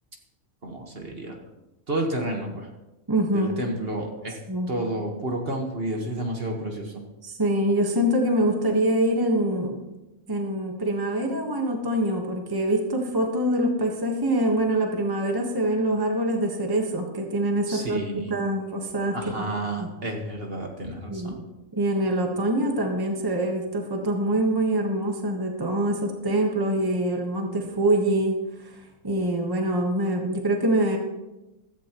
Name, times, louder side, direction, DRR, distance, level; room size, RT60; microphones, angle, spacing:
voice 1, 0.6-1.4 1.9-2.7 3.3-4.4 4.7-7.0 17.7-18.3 19.1-21.4, right 1 dB, 45° right, 2 dB, 1.7 m, -30 dB
voice 2, 3.1-3.6 4.5-4.7 7.2-9.8 10.3-19.4 19.8-19.9 21.1-21.4 21.8-28.7 29.0-31.0, right 1 dB, 15° right, 2 dB, 1.4 m, -25 dB
15.5 x 13.5 x 3.1 m, 1.0 s
omnidirectional pair, 1.4 m